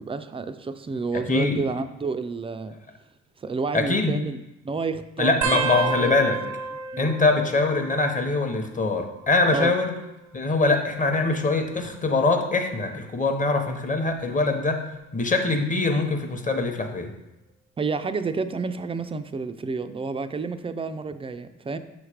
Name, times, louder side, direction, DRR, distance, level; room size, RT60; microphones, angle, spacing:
voice 1, 0.0-2.8 3.4-6.2 6.9-7.2 9.5-9.7 17.8-21.8, right 4 dB, 20° right, 11 dB, 0.3 m, -30 dB
voice 2, 1.3-1.6 3.7-4.1 5.2-6.4 7.0-9.9 10.3-14.8 15.1-17.1, left 3 dB, 25° left, 5 dB, 0.9 m, -23 dB
sound 1, 5.4-8.6 8.9-9.5 10.5-11.9 12.6-12.9 14.1-14.5 16.0-16.1, right 5 dB, 90° right, 0.7 m, -32 dB
6.3 x 3.2 x 4.9 m, 0.96 s
cardioid pair, 90°, 30 cm